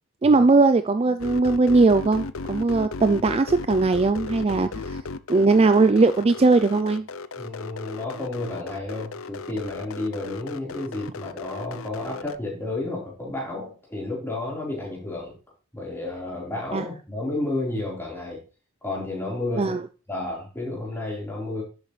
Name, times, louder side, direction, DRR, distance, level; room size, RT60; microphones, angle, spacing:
voice 1, 0.2-5.0 5.3-7.1 16.7-16.8 19.6-19.8, right 3 dB, 25° right, 0.4 m, -19 dB
sound 1, 1.2-12.4, left 4 dB, 65° left, 0.6 m, -36 dB
voice 2, 7.4-15.3 15.7-18.4 18.8-19.8 20.1-21.6, left 2 dB, 10° left, 4.2 m, -31 dB
11.0 x 8.1 x 3.3 m
head